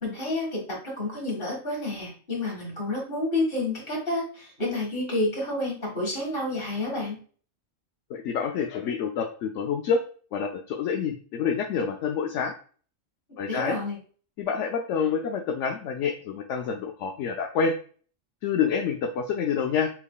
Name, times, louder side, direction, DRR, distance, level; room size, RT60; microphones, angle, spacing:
voice 1, 0.0-7.2 13.4-14.0, left 2 dB, 45° left, -2 dB, 2.0 m, -29 dB
voice 2, 8.1-10.0 10.3-12.5 13.4-13.8 14.4-17.7 18.4-19.9, left 6 dB, 75° left, 3 dB, 0.9 m, -27 dB
5.8 x 3.4 x 2.3 m, 0.42 s
omnidirectional pair, 1.3 m